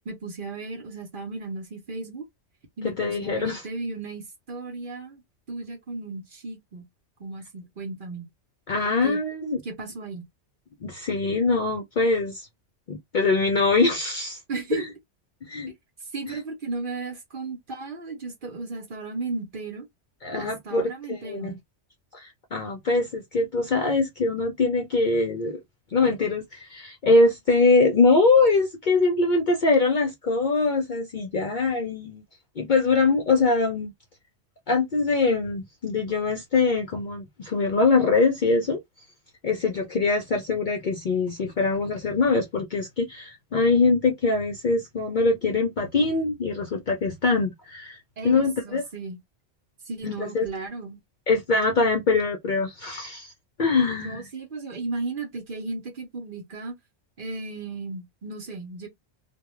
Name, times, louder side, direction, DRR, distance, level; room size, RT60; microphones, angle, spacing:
voice 1, 0.1-2.3 2.8-5.2 5.5-6.8 7.2-8.2 9.0-9.2 9.6-10.3 14.5-14.8 16.1-19.9 20.4-21.6 48.2-49.2 49.8-51.0 54.0-56.8 57.2-58.9, right 3 dB, 50° right, 0.8 m, -35 dB
voice 2, 3.0-3.6 8.7-9.6 10.8-12.5 12.9-14.4 14.7-14.9 15.5-15.7 16.2-16.4 20.2-20.8 21.1-21.5 22.1-25.6 25.9-32.2 32.6-33.9 34.7-38.8 39.4-48.8 50.0-50.5 51.3-53.3 53.6-54.2, left 3 dB, 55° left, 0.5 m, -23 dB
2.3 x 2.2 x 3.0 m
omnidirectional pair, 1.3 m